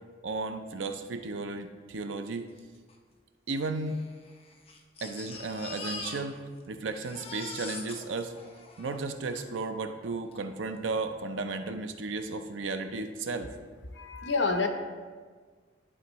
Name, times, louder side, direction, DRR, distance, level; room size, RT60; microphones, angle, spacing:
voice 1, 0.2-2.4 3.5-4.0 5.0-6.4 6.7-8.3 8.8-13.5, right 3 dB, 90° right, 8 dB, 0.5 m, -34 dB
Crying sobbing, 2.6-2.7 2.9-3.0 3.8-6.7 6.9-9.5 10.3-10.4 10.8-10.9, left 4 dB, 30° left, 0.7 m, -43 dB
voice 2, 13.9-14.7, left 4 dB, 70° left, 5 dB, 0.8 m, -28 dB
11.0 x 4.4 x 3.0 m, 1.5 s
head